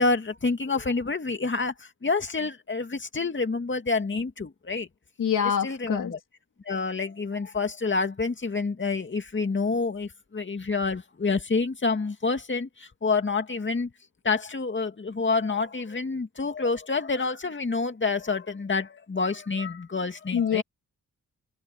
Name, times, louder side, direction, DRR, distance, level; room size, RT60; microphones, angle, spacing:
voice 1, 0.0-1.7 2.0-4.9 5.6-6.2 6.7-13.9 14.2-20.6, left 4 dB, 35° left, 2.3 m, -28 dB
voice 2, 5.2-6.1 20.3-20.6, left 8 dB, 80° left, 2.7 m, -25 dB
cardioid pair, 75°, 31 cm